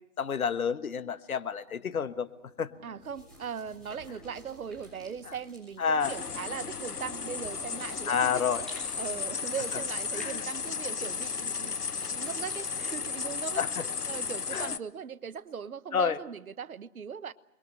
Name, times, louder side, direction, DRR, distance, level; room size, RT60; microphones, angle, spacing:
voice 1, 0.2-2.3 2.6-2.7 5.3-5.4 5.8-6.1 8.1-8.6 10.1-10.4 13.6-13.9 14.5-14.7 15.9-16.2, left 6 dB, 65° left, 1.5 m, -29 dB
sound 1, 1.6-7.3 7.7-8.3 15.3-15.4, left 3 dB, 45° left, 7.3 m, -58 dB
voice 2, 2.8-8.7 9.0-11.8 12.1-13.6 14.1-17.3, right 7 dB, 65° right, 1.2 m, -39 dB
sound 2, 3.0-14.2, equal, ahead, 7.1 m, -54 dB
sound 3, 6.0-14.8, left 5 dB, 85° left, 1.2 m, -34 dB
28.5 x 22.5 x 6.5 m
figure-of-eight pair, 140°, 45 cm